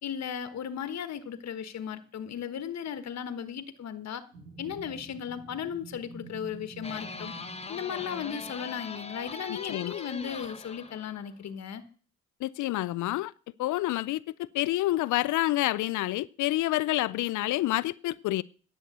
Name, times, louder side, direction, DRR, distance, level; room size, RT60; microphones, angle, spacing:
voice 1, 0.0-4.2 4.6-7.3 7.7-11.8, left 8 dB, 60° left, 1.3 m, -36 dB
sound 1, 4.3-8.2, right 4 dB, 85° right, 4.6 m, -48 dB
sound 2, 6.8-11.3, left 4 dB, 20° left, 1.1 m, -41 dB
voice 2, 12.4-13.3 13.6-18.4, left 16 dB, 75° left, 0.5 m, -28 dB
10.5 x 7.7 x 8.0 m
cardioid pair, 90°, 30 cm